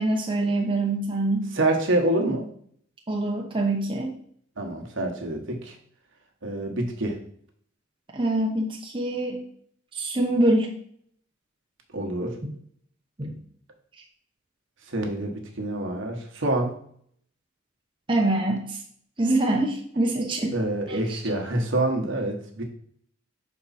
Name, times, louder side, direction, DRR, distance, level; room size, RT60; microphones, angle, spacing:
voice 1, 0.0-1.5 3.1-4.1 8.1-9.4 9.9-10.7 13.2-13.4 18.1-18.8 19.2-20.6 20.9-21.2, right 2 dB, 25° right, -1 dB, 0.8 m, -24 dB
voice 2, 1.5-2.5 4.6-5.8 6.4-7.2 11.9-12.4 14.9-16.7 20.5-22.6, right 1 dB, 60° right, 2 dB, 1.2 m, -26 dB
5.9 x 4.6 x 4.2 m, 0.62 s
head